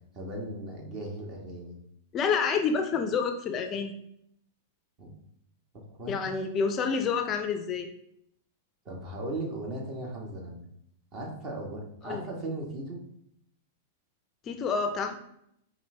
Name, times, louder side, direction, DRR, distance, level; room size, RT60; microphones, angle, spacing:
voice 1, 0.1-1.8 5.0-5.1 6.0-6.2 8.8-10.6 11.1-13.0, right 1 dB, 40° right, 0 dB, 1.3 m, -37 dB
voice 2, 2.1-3.9 6.1-7.9 12.0-12.2 14.5-15.2, left 5 dB, 30° left, 6 dB, 0.4 m, -28 dB
5.3 x 2.6 x 3.2 m, 0.73 s
hypercardioid pair, 115°, 0 cm